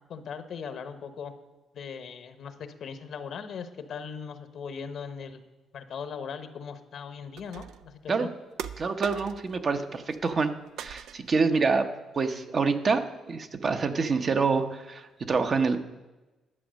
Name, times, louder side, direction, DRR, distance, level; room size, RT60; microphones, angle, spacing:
voice 1, 0.1-1.3 1.7-5.4 5.7-8.3, left 6 dB, 65° left, 10 dB, 1.0 m, -39 dB
sound 1, 7.4-7.9 8.6-9.6 9.9-10.5 10.8-11.4, right 8 dB, 80° right, 0.4 m, -40 dB
voice 2, 8.8-10.5 10.8-11.9 12.2-15.8, right 4 dB, 45° right, 7 dB, 0.9 m, -26 dB
11.0 x 7.2 x 6.3 m, 1.1 s
cardioid pair, 90°, 0 cm